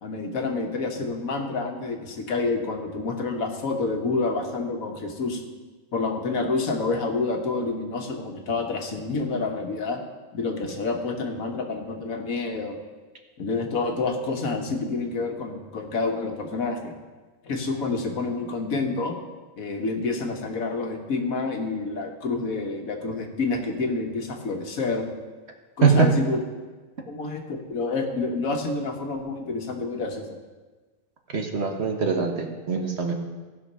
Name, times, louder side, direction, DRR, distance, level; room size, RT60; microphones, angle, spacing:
voice 1, 0.0-5.4 5.9-10.0 10.3-12.8 13.4-16.9 17.4-19.1 19.6-25.1 25.8-26.4 27.1-30.3, left 3 dB, 90° left, 3 dB, 1.6 m, -28 dB
voice 2, 31.3-33.1, right 6 dB, 55° right, 3 dB, 1.4 m, -22 dB
15.5 x 5.8 x 5.4 m, 1.3 s
omnidirectional pair, 1.4 m